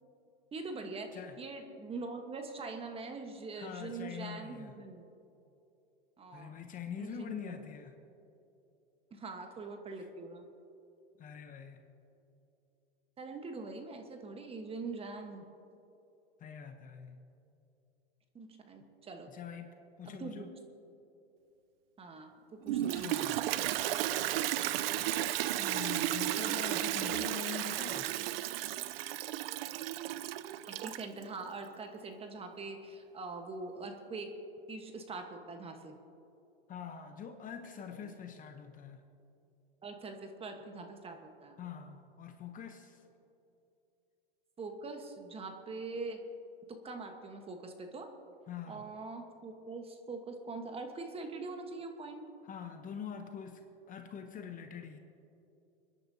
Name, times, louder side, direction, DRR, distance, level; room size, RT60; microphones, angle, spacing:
voice 1, 0.5-5.1 6.2-6.5 7.0-7.7 9.1-10.4 13.2-15.4 18.3-19.3 20.0-20.4 22.0-23.2 30.7-34.3 34.7-36.0 39.8-41.6 44.6-46.2 46.7-48.1 48.7-52.2, right 3 dB, 20° right, 5 dB, 1.2 m, -43 dB
voice 2, 3.5-4.7 6.3-8.0 10.0-10.1 11.2-11.8 16.4-17.3 19.3-20.5 22.8-23.4 25.6-28.1 36.7-39.0 41.6-43.0 48.5-48.8 52.4-53.6 53.9-55.0, left 7 dB, 25° left, 6 dB, 0.9 m, -44 dB
Toilet flush, 22.6-31.2, right 13 dB, 70° right, 0.6 m, -34 dB
29.5 x 10.5 x 2.8 m, 2.8 s
hypercardioid pair, 120°, 31 cm